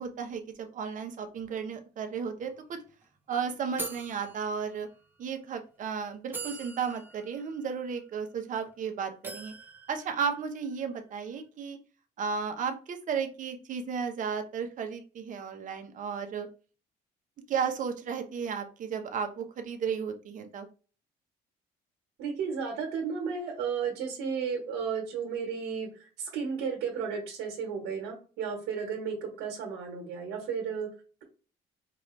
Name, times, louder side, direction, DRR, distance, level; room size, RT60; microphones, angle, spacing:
voice 1, 0.0-2.8 3.3-4.9 5.2-9.5 9.9-11.8 12.2-16.5 17.5-20.7, right 6 dB, 50° right, 6 dB, 0.9 m, -34 dB
sound 1, 2.4-2.5 2.8-3.0 3.8-5.2 5.8-5.9 6.3-8.7 9.2-10.9, right 3 dB, 10° right, 0.8 m, -44 dB
voice 2, 22.2-30.9, right 6 dB, 85° right, 1 dB, 1.3 m, -33 dB
4.9 x 2.5 x 3.2 m, 0.36 s
cardioid pair, 110°, 17 cm